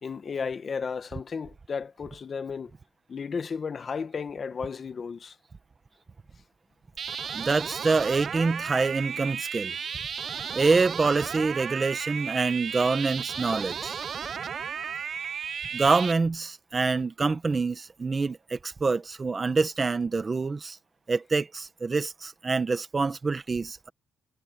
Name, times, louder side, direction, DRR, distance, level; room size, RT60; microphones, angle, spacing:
voice 1, 0.0-2.7 3.1-5.4 13.5-13.6, left 5 dB, 40° left, 1.3 m, -34 dB
sound 1, 7.0-16.1, right 7 dB, 45° right, 0.6 m, -34 dB
voice 2, 7.3-9.8 10.5-13.9 15.7-20.8 21.1-23.9, right 4 dB, 25° right, 1.4 m, -26 dB
cardioid pair, 120°, 0 cm